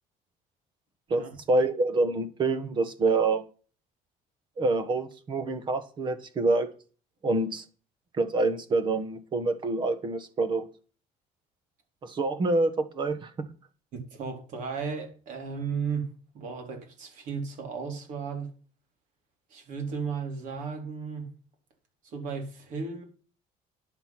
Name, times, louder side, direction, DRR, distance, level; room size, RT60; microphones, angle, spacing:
voice 1, 1.1-3.4 4.6-6.7 7.2-7.6 8.1-10.7 12.0-13.3, right 3 dB, 30° right, 1.3 m, -26 dB
voice 2, 13.9-18.5 19.5-21.2 22.0-23.0, right 5 dB, 60° right, 3.7 m, -35 dB
10.5 x 7.8 x 5.9 m
cardioid pair, 165°, 15 cm